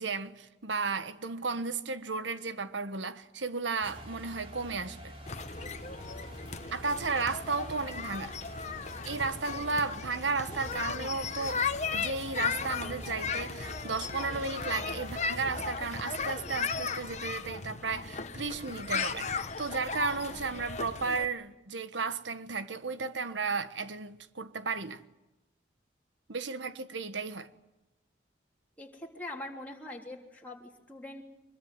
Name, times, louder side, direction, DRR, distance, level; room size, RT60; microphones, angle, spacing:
voice 1, 0.0-5.1 6.7-8.3 9.0-11.6 11.9-25.0 26.3-27.5, right 4 dB, 90° right, 1.4 m, -34 dB
sound 1, 3.8-16.6, right 1 dB, 30° right, 5.4 m, -47 dB
sound 2, 5.3-21.3, left 5 dB, 40° left, 1.3 m, -36 dB
voice 2, 28.8-31.2, left 1 dB, 10° left, 3.5 m, -43 dB
24.5 x 22.0 x 9.5 m
head